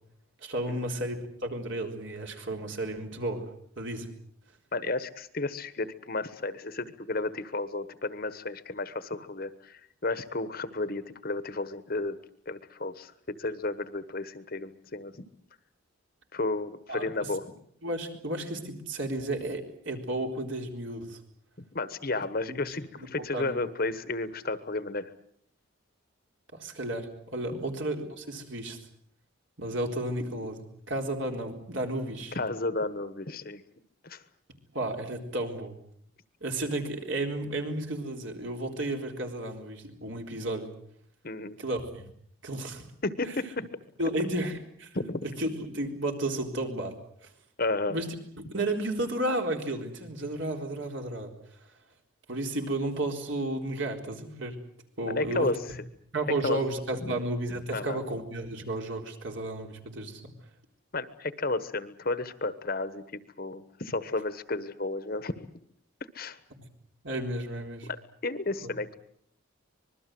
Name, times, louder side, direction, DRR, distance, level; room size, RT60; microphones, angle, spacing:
voice 1, 0.4-3.4 3.8-4.1 16.9-17.3 17.8-21.2 22.5-22.6 23.2-23.6 26.5-28.8 29.6-32.4 34.7-35.8 36.4-40.7 41.6-42.1 42.4-42.8 43.2-43.3 44.0-44.9 45.2-47.0 47.2-47.3 47.9-48.1 48.4-51.3 52.3-54.6 55.0-55.5 56.1-60.3 66.6-66.7 67.0-67.9 68.6-68.7, right 1 dB, 60° right, 3 dB, 4.0 m, -33 dB
voice 2, 4.7-12.2 12.5-13.1 13.4-15.2 16.3-17.4 21.7-25.1 27.5-27.6 32.3-33.6 34.0-34.2 41.2-41.6 43.0-43.7 44.9-45.2 47.6-48.0 55.0-55.8 56.4-56.6 57.0-57.1 57.7-58.0 60.9-63.0 63.4-65.4 66.1-66.4 67.8-68.0 68.2-68.9, left 2 dB, 45° left, 13 dB, 1.2 m, -32 dB
25.5 x 21.0 x 7.8 m, 0.65 s
head